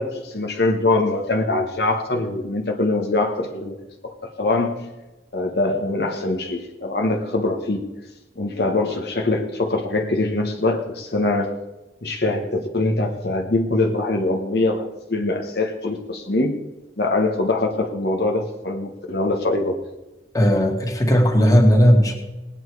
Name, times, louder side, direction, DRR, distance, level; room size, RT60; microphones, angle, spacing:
voice 1, 0.0-3.8 4.0-4.8 5.3-7.9 8.4-11.5 12.0-16.6 17.0-19.8, left 2 dB, 60° left, 2 dB, 1.2 m, -23 dB
voice 2, 20.3-22.1, equal, 20° left, 2 dB, 2.0 m, -16 dB
19.0 x 9.0 x 4.7 m, 1.1 s
head